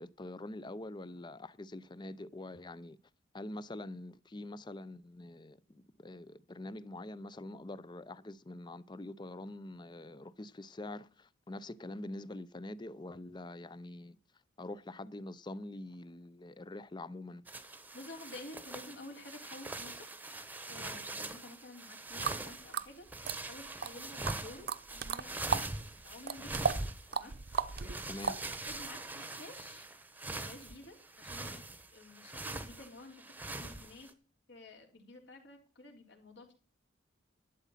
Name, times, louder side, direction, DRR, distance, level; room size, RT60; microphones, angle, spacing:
voice 1, 0.0-3.0 3.3-14.2 14.6-17.4 28.1-28.3, left 2 dB, 25° left, 0.5 m, -45 dB
sound 1, 17.5-34.1, right 2 dB, 10° right, 1.0 m, -43 dB
voice 2, 17.9-20.3 20.7-23.1 23.4-27.3 28.3-29.9 30.3-31.6 31.9-34.1 34.5-36.5, left 2 dB, 60° left, 3.7 m, -51 dB
sound 2, 22.2-22.4 22.7-23.9 24.3-25.7 26.0-28.8, right 6 dB, 50° right, 0.7 m, -35 dB
12.0 x 8.2 x 5.6 m
head